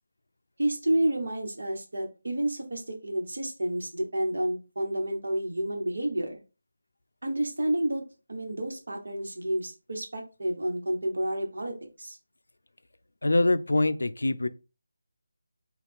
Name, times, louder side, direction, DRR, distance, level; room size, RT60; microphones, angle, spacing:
voice 1, 0.6-6.4 7.2-8.0 8.3-12.2, right 1 dB, 75° right, 1.2 m, -30 dB
voice 2, 13.2-14.5, left 2 dB, 90° left, 0.3 m, -24 dB
4.0 x 2.3 x 3.5 m
figure-of-eight pair, 175°, 0 cm